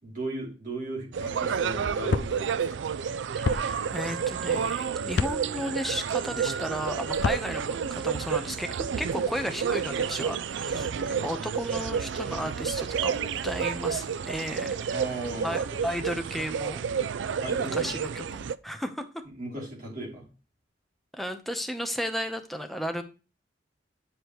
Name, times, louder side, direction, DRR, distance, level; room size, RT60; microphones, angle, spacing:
voice 1, 0.0-2.8 10.7-10.9 14.9-15.8 17.4-17.9 19.4-20.2, right 2 dB, 50° right, -3 dB, 3.1 m, -36 dB
sound 1, 1.1-18.6, right 7 dB, 85° right, 0.4 m, -30 dB
sound 2, 2.1-2.3 3.4-3.6 5.1-5.3 7.1-7.4, left 4 dB, 80° left, 0.5 m, -26 dB
voice 2, 3.4-15.0 15.4-16.8 17.5-19.2 21.1-23.0, equal, ahead, 6 dB, 0.8 m, -34 dB
9.8 x 5.0 x 3.0 m, 0.34 s
head